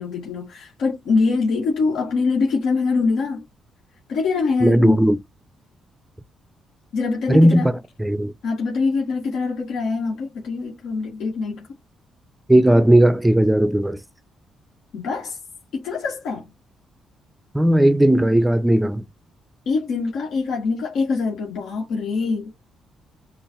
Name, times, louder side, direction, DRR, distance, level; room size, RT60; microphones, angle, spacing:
voice 1, 0.0-3.4 4.1-5.0 6.9-7.7 8.4-11.7 14.9-15.4 15.7-16.5 19.7-22.5, left 4 dB, 80° left, 1.9 m, -23 dB
voice 2, 4.6-5.2 7.3-7.7 8.0-8.3 12.5-14.0 17.5-19.1, right 1 dB, 10° right, 0.5 m, -16 dB
6.9 x 2.5 x 2.9 m
cardioid pair, 90°, 0 cm